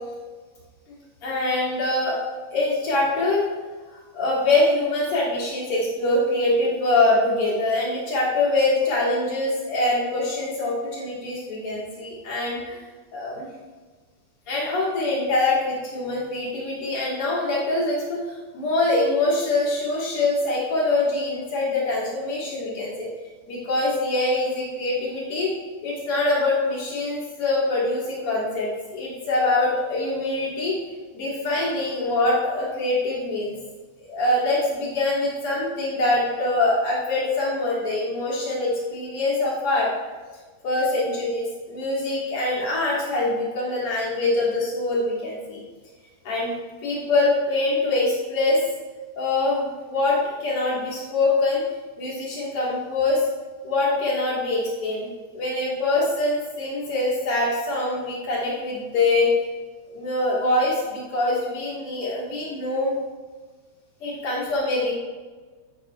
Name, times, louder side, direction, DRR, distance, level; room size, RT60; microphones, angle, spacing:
voice 1, 0.9-2.2 2.5-3.5 4.1-12.9 13.1-13.5 14.5-23.1 23.5-25.5 25.8-30.7 31.1-33.6 34.0-39.9 40.6-45.6 46.2-46.5 46.8-48.6 49.2-51.6 52.0-53.2 53.6-59.3 59.9-62.9 64.0-64.9, left 2 dB, 85° left, -5 dB, 1.2 m, -24 dB
10.5 x 10.0 x 2.4 m, 1.4 s
omnidirectional pair, 5.5 m